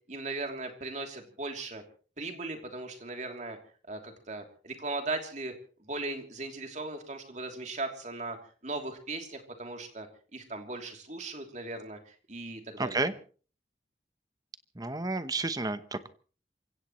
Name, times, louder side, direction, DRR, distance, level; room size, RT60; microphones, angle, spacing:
voice 1, 0.1-1.8 2.2-3.6 3.9-5.5 5.8-8.4 8.6-13.0, right 2 dB, 40° right, 4 dB, 3.1 m, -38 dB
voice 2, 12.8-13.1 14.8-16.1, right 2 dB, 20° right, 12 dB, 1.0 m, -31 dB
28.0 x 16.5 x 3.2 m, 0.40 s
head